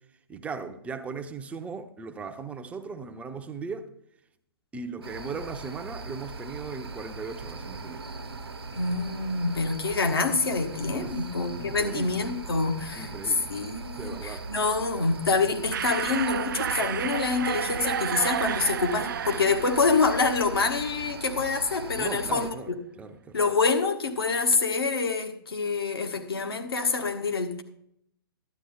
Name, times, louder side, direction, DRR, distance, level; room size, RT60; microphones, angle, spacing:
voice 1, 0.3-3.9 4.7-8.1 10.9-11.2 11.6-12.3 12.9-13.5 14.0-14.5 22.0-23.4, right 4 dB, 10° right, 0.6 m, -38 dB
sound 1, 5.0-22.5, right 3 dB, 80° right, 1.0 m, -40 dB
voice 2, 8.7-13.1 13.5-22.5 23.3-27.6, left 4 dB, 70° left, 1.4 m, -26 dB
sound 2, 15.7-21.2, right 9 dB, 55° right, 0.4 m, -32 dB
11.5 x 9.1 x 3.6 m
figure-of-eight pair, 120°, 13 cm